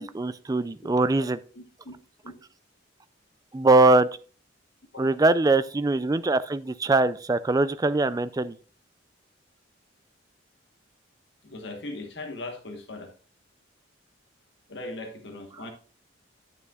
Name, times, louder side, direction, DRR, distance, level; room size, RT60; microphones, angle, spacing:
voice 1, 0.0-1.4 3.5-4.1 5.0-8.6, right 2 dB, 20° right, 14 dB, 0.3 m, -22 dB
voice 2, 0.6-0.9 1.2-1.3 1.5-1.9 2.2-2.3 4.9-5.1 11.4-13.1 14.7-15.7, left 2 dB, 60° left, 4 dB, 1.3 m, -39 dB
9.5 x 9.0 x 2.4 m, 0.40 s
head